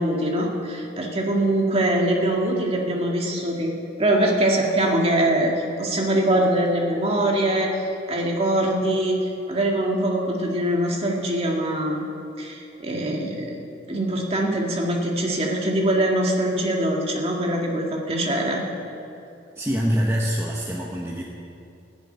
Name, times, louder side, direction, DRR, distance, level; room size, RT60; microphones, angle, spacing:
voice 1, 0.0-3.7 4.0-7.7 8.1-12.0 12.4-13.6 13.9-18.6, right 1 dB, 35° right, -1 dB, 1.9 m, -23 dB
voice 2, 19.6-21.2, equal, 15° right, -3 dB, 1.1 m, -24 dB
16.0 x 7.2 x 9.3 m, 2.7 s
head